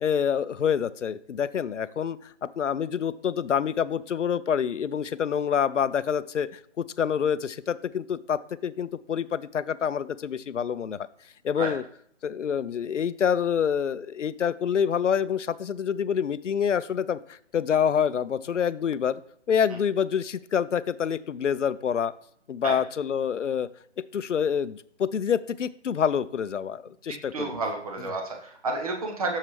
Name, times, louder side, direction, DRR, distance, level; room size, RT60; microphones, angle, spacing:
voice 1, 0.0-11.1 11.4-11.8 12.2-19.2 19.5-22.1 22.5-23.7 24.1-27.5, left 8 dB, 80° left, 16 dB, 0.5 m, -27 dB
voice 2, 27.3-29.4, right 3 dB, 30° right, 2 dB, 1.0 m, -30 dB
7.4 x 6.5 x 3.2 m, 0.65 s
figure-of-eight pair, 155°, 36 cm